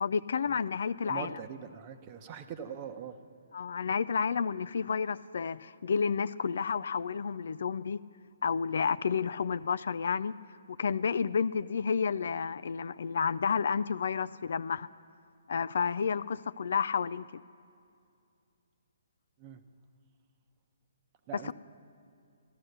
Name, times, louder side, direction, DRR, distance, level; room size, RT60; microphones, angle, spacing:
voice 1, 0.0-1.3 3.5-8.0 8.4-10.3 10.7-14.9 15.5-17.4 21.5-21.6, left 6 dB, 65° left, 0.3 m, -30 dB
voice 2, 1.0-3.2 19.4-19.6 21.3-21.5, right 8 dB, 35° right, 0.8 m, -42 dB
14.0 x 12.0 x 6.6 m
figure-of-eight pair, 135°, 0 cm